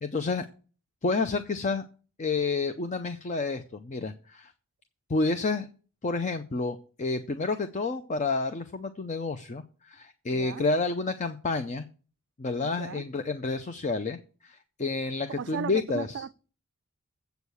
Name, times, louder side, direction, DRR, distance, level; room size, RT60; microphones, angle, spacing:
voice 1, 0.0-0.5 1.0-1.9 2.2-4.5 5.1-5.7 6.0-11.9 12.4-16.2, left 3 dB, 35° left, 0.5 m, -30 dB
voice 2, 10.3-10.7 12.7-13.1 15.4-16.3, right 6 dB, 55° right, 0.4 m, -36 dB
8.0 x 6.4 x 6.9 m
head